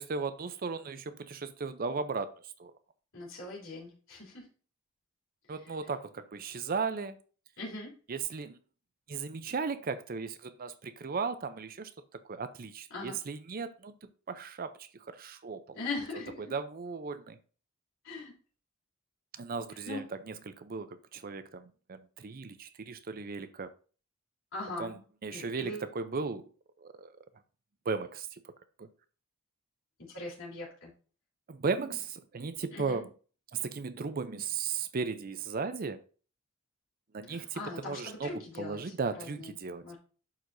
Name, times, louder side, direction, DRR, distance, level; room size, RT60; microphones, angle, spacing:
voice 1, 0.0-2.3 2.6-2.7 5.5-7.2 8.1-8.6 9.1-11.9 12.3-13.9 14.3-15.8 16.5-17.4 19.3-20.0 20.5-23.7 24.8-24.9 25.2-26.5 26.8-27.2 27.9-28.5 28.8-28.9 31.5-33.1 33.6-36.0 37.1-38.3 38.6-39.9, right 4 dB, 45° right, 0.5 m, -36 dB
voice 2, 3.1-4.5 5.5-5.8 7.6-7.9 12.9-13.2 15.7-16.5 18.0-18.3 19.7-20.0 24.5-24.9 25.3-25.9 30.0-30.9 32.7-33.0 37.3-39.6 39.8-40.0, left 2 dB, 65° left, 3.3 m, -41 dB
11.0 x 4.5 x 2.6 m
head